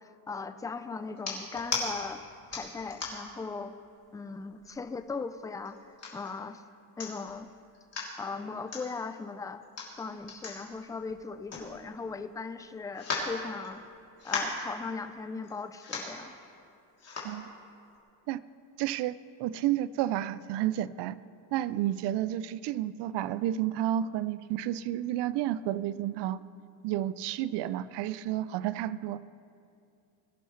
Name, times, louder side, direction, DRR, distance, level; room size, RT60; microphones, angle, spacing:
voice 1, 0.0-2.2 2.5-3.7 4.1-5.8 6.1-6.6 7.0-7.5 8.2-9.6 9.9-13.8 14.2-16.3, left 4 dB, 10° left, 10 dB, 0.3 m, -38 dB
sound 1, 1.2-1.9 2.5-3.4 3.9-4.0 4.4-5.0 5.6-6.3 6.7-6.8 7.0-7.4 7.7-8.1 8.7-8.8 9.6-12.1 12.4-12.5 12.9-13.9 14.2-14.6 15.4-15.5 15.8-16.2 17.0-17.3 17.9-18.0, left 4 dB, 35° left, 3.2 m, -36 dB
voice 2, 18.8-21.2 21.5-26.4 26.8-29.3, right 12 dB, 70° right, 17 dB, 0.5 m, -31 dB
22.0 x 11.0 x 3.2 m, 2.5 s
cardioid pair, 120°, 42 cm